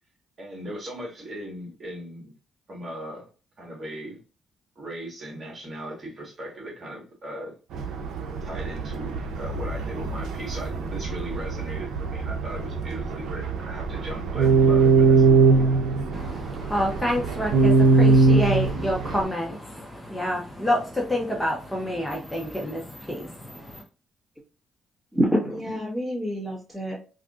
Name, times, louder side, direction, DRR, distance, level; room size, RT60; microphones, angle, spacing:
voice 1, 0.4-2.3 2.7-3.3 3.6-4.2 4.7-7.5 8.4-15.3, right 1 dB, 40° right, 1.5 m, -38 dB
sound 1, 7.7-19.2, right 4 dB, 80° right, 0.6 m, -22 dB
sound 2, 9.1-11.9, left 3 dB, 45° left, 0.8 m, -40 dB
voice 2, 16.1-23.8, equal, 10° left, 0.8 m, -28 dB
voice 3, 25.1-27.0, equal, 10° right, 1.5 m, -26 dB
3.5 x 2.6 x 2.4 m
cardioid pair, 90°, 0 cm